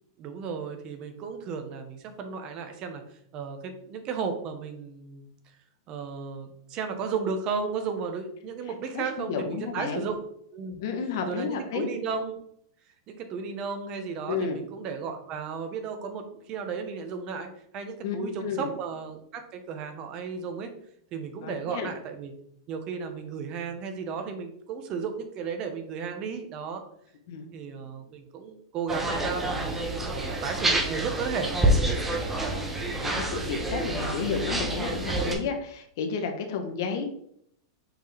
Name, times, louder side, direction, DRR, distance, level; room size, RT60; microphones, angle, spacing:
voice 1, 0.2-3.0 3.3-5.3 5.9-10.2 10.5-10.8 11.3-12.4 13.1-17.5 17.7-20.7 21.1-22.3 22.7-26.8 27.5-29.7 30.1-31.5, right 5 dB, 40° right, 6 dB, 1.2 m, -34 dB
voice 2, 8.9-10.1 10.8-11.9 14.3-14.6 18.0-18.7 21.4-21.9 27.3-27.4 32.5-32.7 33.0-37.0, left 5 dB, 65° left, 5 dB, 1.2 m, -32 dB
sound 1, 28.9-35.3, right 1 dB, 10° right, 1.2 m, -28 dB
6.0 x 4.6 x 3.5 m, 0.69 s
hypercardioid pair, 120°, 2 cm